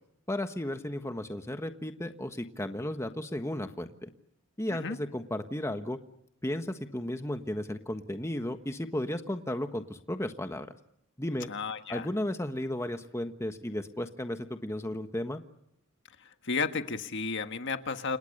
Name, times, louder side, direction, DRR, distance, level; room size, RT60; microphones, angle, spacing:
voice 1, 0.3-4.1 4.6-6.0 6.4-10.7 11.2-11.5 11.9-15.4, left 1 dB, 15° left, 7 dB, 1.4 m, -34 dB
voice 2, 11.5-12.1 16.2-18.2, left 4 dB, 55° left, 8 dB, 1.6 m, -33 dB
29.5 x 27.5 x 6.7 m, 0.76 s
head